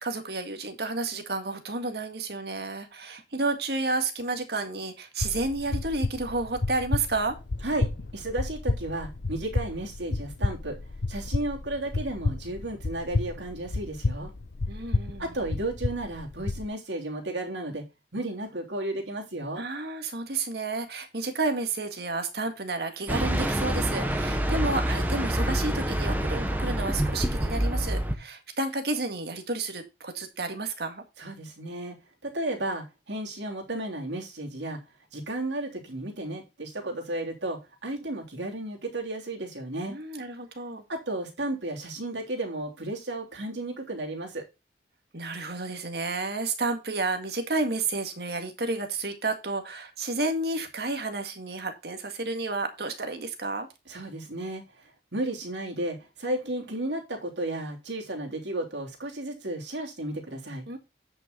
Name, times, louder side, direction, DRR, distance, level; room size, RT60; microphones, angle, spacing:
voice 1, 0.0-7.4 14.7-15.3 19.6-31.0 39.9-40.8 45.1-53.7 60.7-60.8, right 3 dB, 65° right, 6 dB, 1.9 m, -31 dB
sound 1, 5.2-16.6, left 3 dB, 80° left, 0.8 m, -31 dB
voice 2, 7.6-10.8 11.1-14.3 15.2-17.8 18.1-19.6 31.2-32.0 32.2-34.8 35.1-40.0 40.9-44.4 53.9-54.6 55.1-60.6, right 1 dB, 85° right, 1 dB, 3.2 m, -33 dB
sound 2, 23.1-28.1, right 1 dB, 10° right, 1.2 m, -27 dB
9.6 x 5.7 x 3.9 m, 0.26 s
head